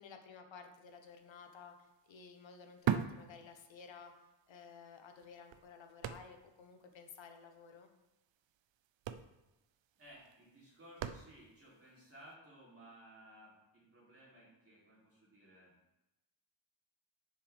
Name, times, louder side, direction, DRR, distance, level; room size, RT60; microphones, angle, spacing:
voice 1, 0.0-4.1 4.5-7.9, left 5 dB, 85° left, 5 dB, 1.0 m, -54 dB
sound 1, 1.1-1.2 1.5-4.1 4.5-4.6 5.2-6.7 6.9-7.0 7.3-7.6 8.4-8.6 8.8-11.7 12.3-12.4, right 9 dB, 80° right, 0.5 m, -40 dB
voice 2, 9.9-15.7, right 1 dB, 30° right, -6 dB, 3.1 m, -58 dB
10.0 x 5.7 x 3.4 m, 0.97 s
wide cardioid pair, 140°, 44 cm